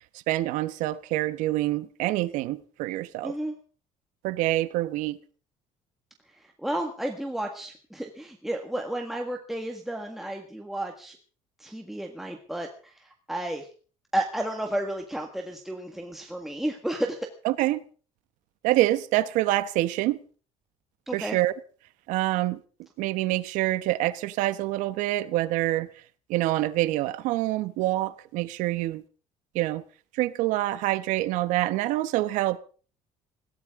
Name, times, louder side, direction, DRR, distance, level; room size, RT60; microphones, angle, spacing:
voice 1, 0.3-3.3 4.2-5.2 17.4-17.8 18.6-20.2 21.1-21.5 22.1-22.6 23.0-25.9 26.3-29.0 29.5-29.8 30.1-32.6, right 16 dB, 85° right, 1.1 m, -26 dB
voice 2, 3.2-3.5 6.3-11.2 11.6-13.7 14.1-17.3 21.1-21.4, right 1 dB, ahead, 1.7 m, -32 dB
21.5 x 16.5 x 3.7 m
cardioid pair, 145°, 13 cm